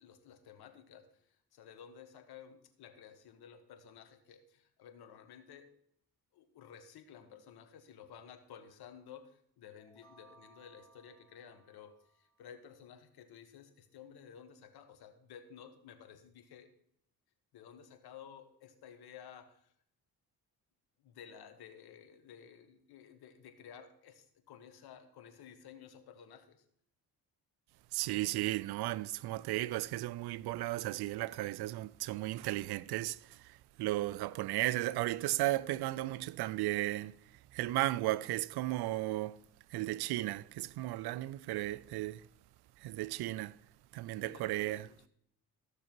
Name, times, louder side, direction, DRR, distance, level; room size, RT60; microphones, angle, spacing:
voice 1, 0.0-5.7 6.3-16.7 17.5-19.7 21.0-26.6 44.2-45.1, left 8 dB, 85° left, 1.5 m, -54 dB
sound 1, 9.8-12.5, right 2 dB, 10° left, 2.2 m, -64 dB
voice 2, 27.9-37.2 37.5-39.4 39.7-42.3 42.8-43.6 43.9-44.9, right 16 dB, 90° right, 0.5 m, -35 dB
14.5 x 6.8 x 4.5 m
cardioid pair, 105°, 37 cm